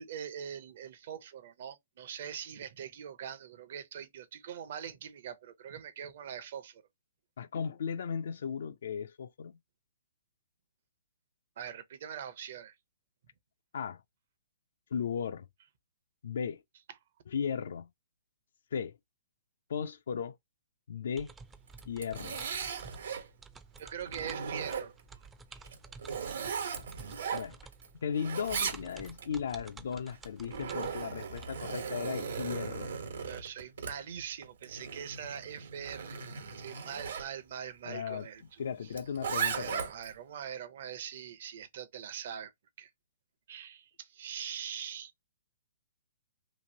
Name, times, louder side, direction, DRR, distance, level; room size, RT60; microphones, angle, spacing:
voice 1, 0.0-6.8 11.6-12.8 23.8-25.6 33.2-36.2 36.5-38.9 39.2-42.5 42.8-42.9 43.5-45.2, right 8 dB, 55° right, 0.7 m, -43 dB
voice 2, 7.4-9.5 13.7-14.0 14.9-15.5 16.2-16.6 17.3-17.9 18.7-19.0 19.7-20.3 20.9-21.3 21.9-22.4 27.3-27.6 28.0-32.9 37.9-38.3 38.6-39.9, left 7 dB, 70° left, 0.4 m, -36 dB
sound 1, 21.2-31.4, right 4 dB, 10° right, 0.4 m, -52 dB
Zipper (clothing), 21.7-23.3 23.8-25.1 25.6-27.9 28.1-29.3 30.1-37.3 38.9-40.1, right 6 dB, 80° right, 1.2 m, -37 dB
3.0 x 2.5 x 2.7 m
hypercardioid pair, 150°, 0 cm